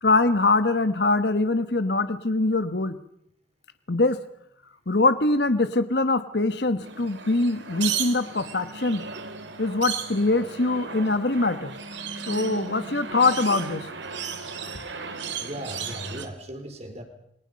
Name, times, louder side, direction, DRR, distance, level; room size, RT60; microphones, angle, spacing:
voice 1, 0.0-3.0 3.9-4.2 4.9-9.0 9.6-11.7 12.3-13.9, left 2 dB, 60° left, 11 dB, 1.3 m, -23 dB
sound 1, 6.8-16.3, right 6 dB, 70° right, 2.6 m, -35 dB
voice 2, 15.2-17.0, right 1 dB, 35° right, 5 dB, 4.3 m, -37 dB
28.5 x 24.5 x 5.3 m, 0.73 s
head